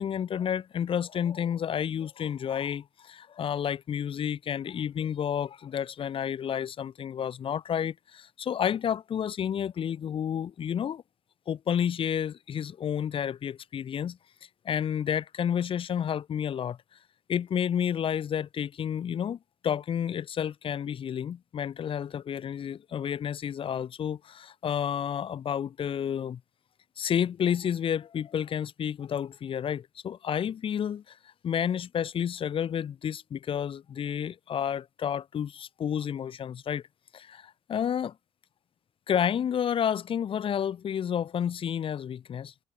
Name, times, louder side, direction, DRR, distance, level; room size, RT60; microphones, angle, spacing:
voice 1, 0.0-11.0 11.5-14.2 14.6-16.8 17.3-19.4 19.6-26.4 27.0-31.1 31.4-36.8 37.1-38.1 39.1-42.5, left 8 dB, 50° left, 4.5 m, -30 dB
cardioid pair, 105°, 12 cm